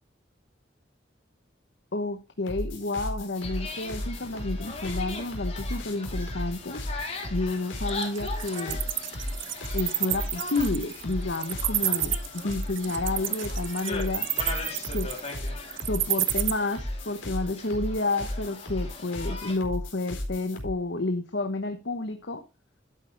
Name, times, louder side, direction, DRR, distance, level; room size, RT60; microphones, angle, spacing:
voice 1, 1.9-6.8 7.3-8.8 9.7-14.3 14.9-15.1 15.8-22.4, left 2 dB, 65° left, 7 dB, 1.0 m, -30 dB
sound 1, 2.5-20.7, left 1 dB, 85° left, 4.5 m, -35 dB
sound 2, 3.4-19.6, left 3 dB, 35° left, 3.5 m, -40 dB
Wild animals, 7.9-16.5, right 16 dB, 85° right, 0.9 m, -29 dB
12.0 x 9.0 x 3.4 m, 0.26 s
head